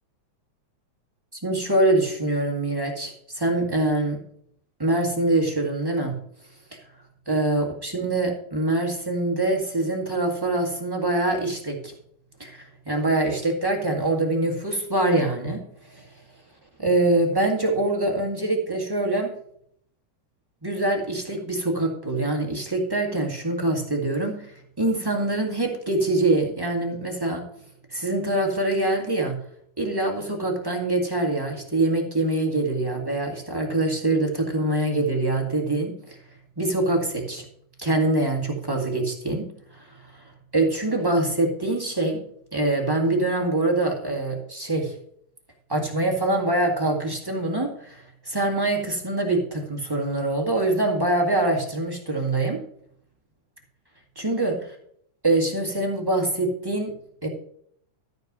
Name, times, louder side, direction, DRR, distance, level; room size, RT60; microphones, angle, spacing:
voice 1, 1.4-4.2 4.8-6.1 7.3-11.8 12.4-15.6 15.9-16.1 16.8-19.3 20.6-27.4 27.9-29.4 29.8-36.2 36.6-37.4 37.8-39.5 39.7-39.9 40.5-42.2 42.5-44.9 45.7-52.6 54.1-54.6 55.2-56.9 57.2-57.3, right 2 dB, 15° right, 0 dB, 1.0 m, -24 dB
13.5 x 4.6 x 6.1 m, 0.65 s
omnidirectional pair, 3.5 m